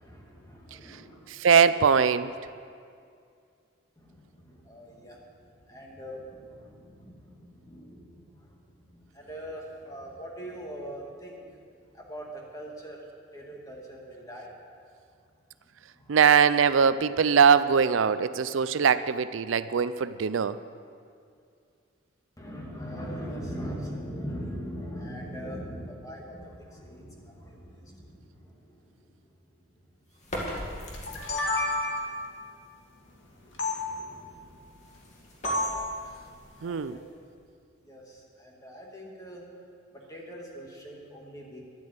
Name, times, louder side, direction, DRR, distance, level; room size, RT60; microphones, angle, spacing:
voice 1, 0.0-1.3 4.0-11.7 11.9-14.5 15.9-16.2 18.1-18.5 22.4-29.3 29.6-29.8 31.4-31.9 33.4-34.6 36.6-37.1 37.8-39.4 39.9-41.7, equal, 15° left, -2 dB, 1.9 m, -42 dB
voice 2, 1.3-2.3 16.1-20.6 36.6-37.0, right 6 dB, 75° right, 14 dB, 0.5 m, -21 dB
sound 1, 30.1-31.7 34.4-37.4, equal, 35° left, 2.1 m, -40 dB
sound 2, 30.9-32.2 33.6-33.8 35.4-35.9, left 1 dB, 70° left, 2.0 m, -29 dB
11.5 x 8.6 x 8.1 m, 2.3 s
head